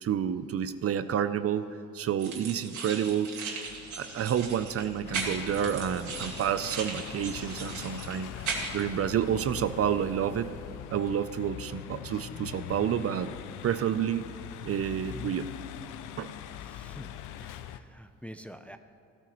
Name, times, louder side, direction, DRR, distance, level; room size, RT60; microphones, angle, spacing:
voice 1, 0.0-3.4 4.0-10.5 10.9-13.3 13.6-14.3 14.6-15.5 16.2-16.3, right 9 dB, 50° right, 12 dB, 0.5 m, -29 dB
sound 1, 2.2-8.8, right 4 dB, 75° right, 2.3 m, -38 dB
sound 2, 3.6-10.8, left 4 dB, 65° left, 2.1 m, -51 dB
sound 3, 5.0-17.8, left 10 dB, 85° left, 0.5 m, -42 dB
voice 2, 16.6-17.1 17.4-18.8, equal, 5° left, 8 dB, 0.5 m, -47 dB
15.0 x 13.0 x 3.1 m, 2.3 s
cardioid pair, 90°, 30 cm